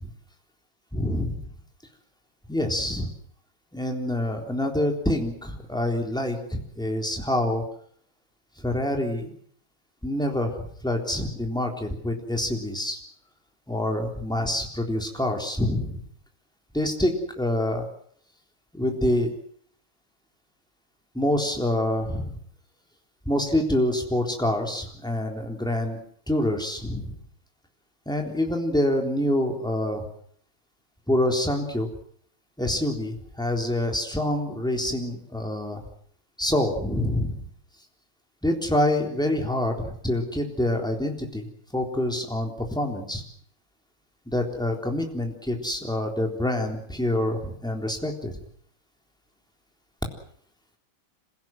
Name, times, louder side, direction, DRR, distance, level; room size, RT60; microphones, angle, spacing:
voice 1, 0.9-1.4 2.5-3.1 3.7-7.6 8.6-9.3 10.0-13.0 13.7-16.0 16.7-17.8 18.7-19.4 21.1-22.3 23.3-26.0 26.3-27.1 28.1-30.1 31.1-31.9 32.6-35.8 36.4-37.4 38.4-41.5 41.7-43.2 44.3-48.3, left 1 dB, ahead, 2 dB, 3.6 m, -26 dB
26.5 x 17.0 x 7.7 m, 0.63 s
omnidirectional pair, 2.2 m